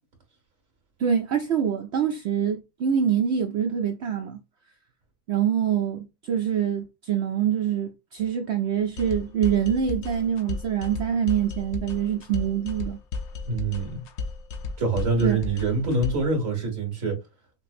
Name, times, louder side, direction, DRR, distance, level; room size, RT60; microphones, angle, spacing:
voice 1, 1.0-4.4 5.3-13.0 15.2-15.4, right 8 dB, 75° right, 0.6 m, -25 dB
sound 1, 9.0-16.3, left 4 dB, 60° left, 0.7 m, -34 dB
voice 2, 13.5-14.0 14.8-17.2, right 3 dB, 55° right, 2.1 m, -25 dB
5.6 x 2.0 x 2.5 m
omnidirectional pair, 1.7 m